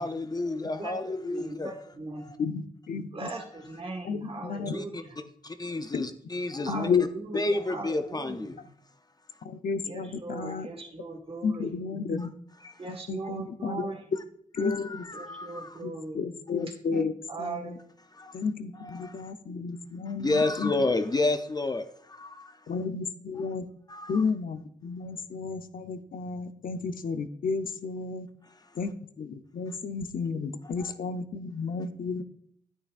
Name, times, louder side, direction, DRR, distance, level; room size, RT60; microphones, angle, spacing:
voice 1, 0.0-1.7 2.2-2.4 3.4-3.5 4.7-4.8 5.2-6.9 7.3-8.6 10.5-10.6 12.6-12.7 14.6-15.8 18.1-18.3 18.8-19.2 20.2-22.6 23.9-24.2 30.6-30.9, left 2 dB, 25° left, 0.6 m, -31 dB
voice 2, 1.2-2.3 3.1-5.1 6.7-7.2 7.5-8.6 9.9-11.7 12.8-14.0 15.1-16.2 17.3-17.8, right 3 dB, 40° right, 1.6 m, -38 dB
voice 3, 2.4-3.3 4.0-4.8 5.9-6.0 6.7-7.1 7.3-7.4 9.4-10.7 11.4-12.3 12.8-13.9 14.6-15.1 15.8-17.1 17.4-17.8 18.3-20.7 22.7-23.7 24.1-28.3 28.7-32.2, left 5 dB, 75° left, 0.6 m, -32 dB
10.0 x 8.7 x 2.5 m
cardioid pair, 80°, 15 cm